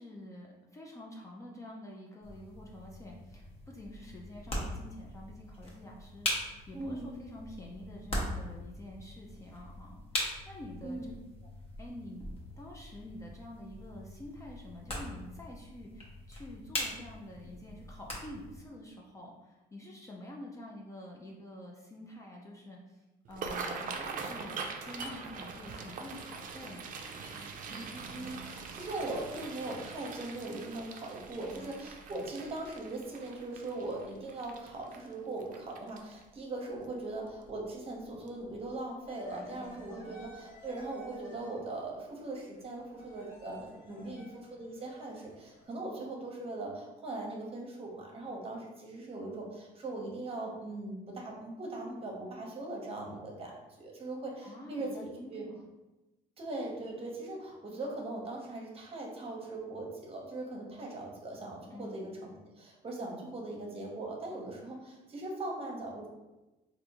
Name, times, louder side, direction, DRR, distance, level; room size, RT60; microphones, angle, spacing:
voice 1, 0.0-11.0 11.8-12.2 12.6-26.8 31.4-31.8 39.3-40.2 43.9-44.3 54.4-55.7 61.7-62.1, left 1 dB, 20° left, -2 dB, 0.4 m, -48 dB
sound 1, 2.2-18.6, left 1 dB, 35° left, 0.9 m, -41 dB
voice 2, 6.7-7.1 10.8-11.2 27.7-53.5 53.8-55.4 56.4-66.1, right 2 dB, 35° right, -1 dB, 0.8 m, -40 dB
sound 2, 23.2-36.4 36.8-37.1 37.4-37.9 38.3-38.4 39.7-39.8 40.2-40.3 40.8-40.9, right 5 dB, 55° right, 0.4 m, -43 dB
sound 3, 39.1-45.6, right 1 dB, 70° left, 1.4 m, -54 dB
3.4 x 2.5 x 2.9 m, 1.0 s
cardioid pair, 110°, 17 cm